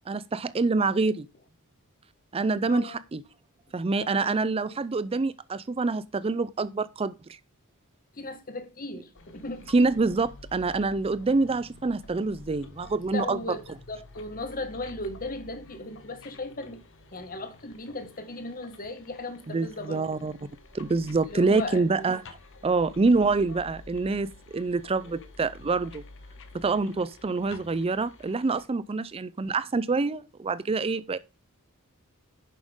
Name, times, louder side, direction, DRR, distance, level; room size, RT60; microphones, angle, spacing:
voice 1, 0.1-1.3 2.3-3.2 3.7-7.4 9.7-13.6 19.5-20.3 20.7-22.2 22.6-26.0 26.5-31.2, right 3 dB, 25° right, 0.4 m, -26 dB
voice 2, 2.6-3.0 4.0-4.4 4.7-4.8 8.2-9.7 13.1-13.6 13.9-16.8 17.1-20.1 21.3-22.1, left 2 dB, 40° left, 1.7 m, -37 dB
sound 1, 9.1-28.6, left 2 dB, 60° left, 1.7 m, -50 dB
10.5 x 7.3 x 3.6 m
head